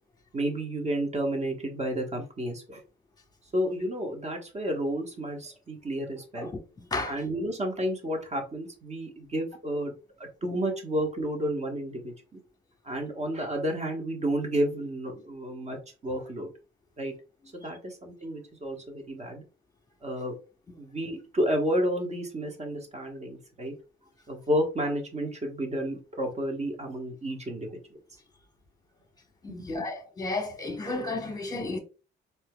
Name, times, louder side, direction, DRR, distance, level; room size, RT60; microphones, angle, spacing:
voice 1, 0.3-2.8 3.5-6.5 7.1-9.9 10.2-12.4 12.8-15.8 16.0-16.5 17.0-17.1 17.5-19.4 20.0-20.3 20.8-23.7 24.3-27.8 29.5-29.7, equal, 35° right, 1.2 m, -31 dB
voice 2, 6.8-7.2 29.4-31.8, left 2 dB, 20° left, 1.0 m, -33 dB
4.2 x 2.8 x 2.2 m
cardioid pair, 90°, 20 cm